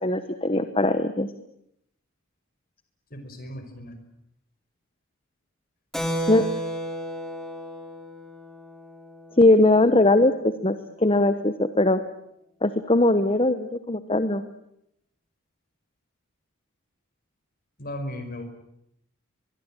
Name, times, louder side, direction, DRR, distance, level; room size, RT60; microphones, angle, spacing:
voice 1, 0.0-1.3 6.3-6.4 9.4-12.0 12.6-14.4, left 2 dB, 25° left, 10 dB, 1.1 m, -20 dB
voice 2, 3.1-4.0 17.8-18.4, left 1 dB, 40° left, 7 dB, 5.2 m, -36 dB
Keyboard (musical), 5.9-10.0, equal, ahead, 3.1 m, -33 dB
24.0 x 22.5 x 8.9 m, 0.77 s
head